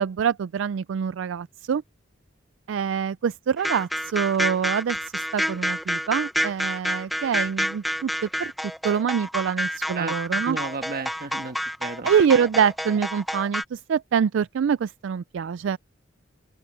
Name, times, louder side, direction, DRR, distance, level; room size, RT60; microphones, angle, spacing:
voice 1, 0.0-1.8 2.7-8.5 8.8-10.6 12.0-15.8, right 7 dB, 75° right, 0.3 m, -25 dB
sound 1, 3.6-13.6, equal, ahead, 0.8 m, -28 dB
voice 2, 10.4-12.1, right 3 dB, 50° right, 1.5 m, -33 dB
open air
head